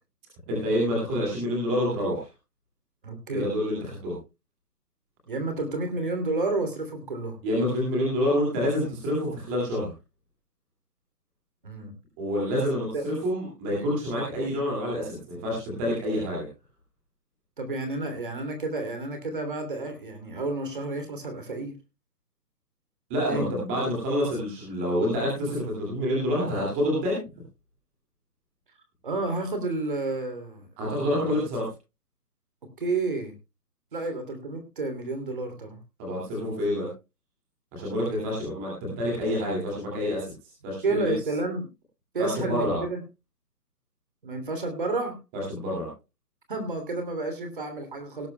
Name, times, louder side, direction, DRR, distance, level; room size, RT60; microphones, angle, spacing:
voice 1, 0.5-2.3 3.3-4.1 7.4-9.9 12.2-16.5 23.1-27.2 30.8-31.7 36.0-36.9 37.7-40.3 40.6-41.1 42.2-42.8 45.3-45.9, equal, 5° right, -4 dB, 2.3 m, -27 dB
voice 2, 3.0-3.5 5.3-7.4 11.6-11.9 12.9-13.0 17.6-21.8 23.3-23.5 29.0-31.3 32.8-33.3 33.9-35.8 40.8-41.7 42.1-43.0 44.2-45.2 46.5-48.3, right 2 dB, 35° right, 6 dB, 3.0 m, -30 dB
18.0 x 11.5 x 2.2 m, 0.27 s
hypercardioid pair, 175°, 47 cm